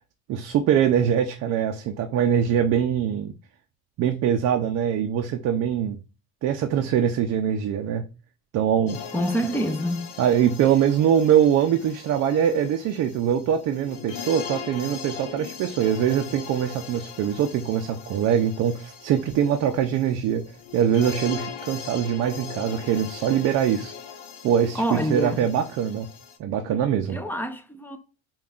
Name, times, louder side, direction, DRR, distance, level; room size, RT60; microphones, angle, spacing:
voice 1, 0.3-3.3 4.0-6.0 6.4-8.0 8.5-9.0 10.2-20.4 20.7-23.9 24.4-26.1 26.4-27.2, right 9 dB, 50° right, 0.5 m, -23 dB
sound 1, 8.9-26.4, left 7 dB, 85° left, 0.8 m, -40 dB
voice 2, 9.1-10.2 24.7-25.5 27.1-28.0, equal, 5° left, 0.5 m, -27 dB
5.3 x 2.3 x 2.3 m
cardioid pair, 125°, 32 cm